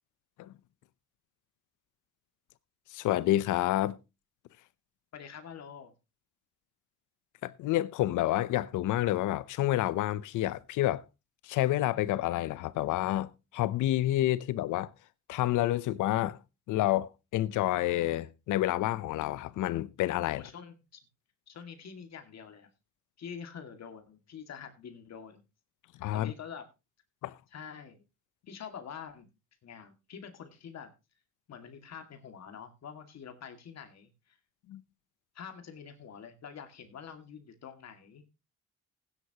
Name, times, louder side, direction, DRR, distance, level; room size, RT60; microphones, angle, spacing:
voice 1, 2.9-4.0 7.4-11.0 11.4-14.9 15.3-16.4 16.7-20.5 26.0-26.3 27.2-27.3 34.7-34.8, left 14 dB, 90° left, 0.8 m, -29 dB
voice 2, 5.1-5.9 20.3-21.0 21.5-22.7 23.2-25.4 26.1-26.7 27.5-28.0 28.5-29.3 29.6-30.9 31.5-34.4 35.3-38.2, left 7 dB, 60° left, 2.3 m, -46 dB
16.0 x 9.9 x 3.0 m
cardioid pair, 90°, 30 cm